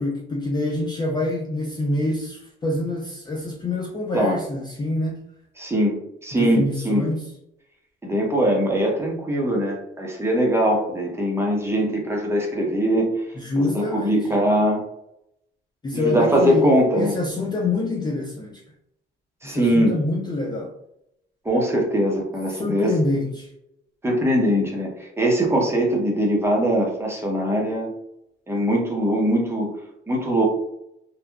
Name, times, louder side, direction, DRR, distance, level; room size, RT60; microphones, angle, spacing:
voice 1, 0.0-5.2 6.3-7.3 13.4-14.3 15.8-18.6 19.4-20.7 22.5-23.5, left 2 dB, 20° left, -1 dB, 0.4 m, -26 dB
voice 2, 5.6-5.9 6.2-7.0 8.0-13.1 13.6-14.8 15.9-17.2 19.4-20.0 21.4-22.9 24.0-27.9 28.5-29.7 30.1-30.4, equal, 15° right, -1 dB, 0.8 m, -21 dB
2.7 x 2.2 x 2.3 m, 0.80 s
cardioid pair, 90°, 20 cm